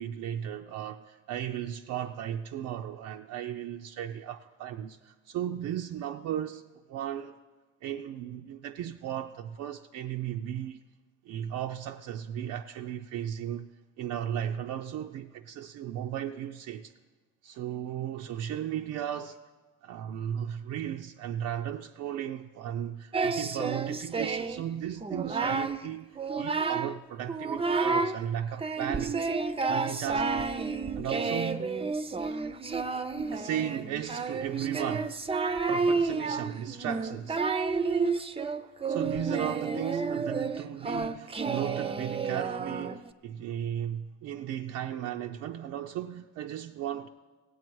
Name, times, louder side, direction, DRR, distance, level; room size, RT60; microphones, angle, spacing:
voice 1, 0.0-6.6 6.9-7.3 7.8-10.8 11.3-13.7 14.0-16.9 17.4-19.4 19.8-26.1 26.3-29.2 29.7-30.5 31.0-31.7 32.3-32.4 33.3-35.2 35.7-37.4 38.9-47.1, right 10 dB, 85° right, 0.5 m, -35 dB
Singing, 23.1-24.6 25.0-25.8 26.2-27.0 27.3-28.2 28.6-43.1, right 4 dB, 20° right, 0.5 m, -30 dB
17.0 x 8.1 x 4.6 m
cardioid pair, 90°, 30 cm